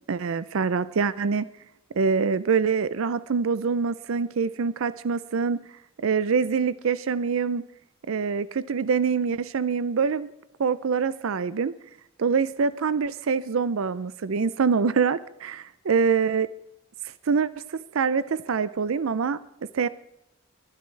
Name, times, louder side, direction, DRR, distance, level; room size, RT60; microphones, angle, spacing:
voice 1, 0.1-1.5 1.9-5.6 6.0-7.6 8.1-10.3 10.6-11.7 12.2-16.5 17.3-19.4 19.7-19.9, right 5 dB, 70° right, 16 dB, 0.5 m, -25 dB
24.0 x 10.5 x 3.3 m, 0.80 s
head